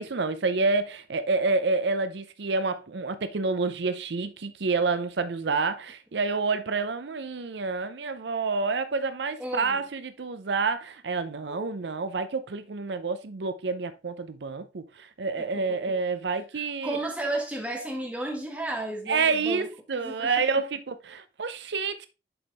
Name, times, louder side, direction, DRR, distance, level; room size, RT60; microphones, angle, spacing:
voice 1, 0.0-17.0 19.1-22.1, right 4 dB, 80° right, 0.6 m, -28 dB
voice 2, 9.4-9.8 11.5-11.7 15.4-16.0 16.5-20.3, right 1 dB, 5° right, 1.6 m, -34 dB
7.0 x 5.4 x 3.4 m
head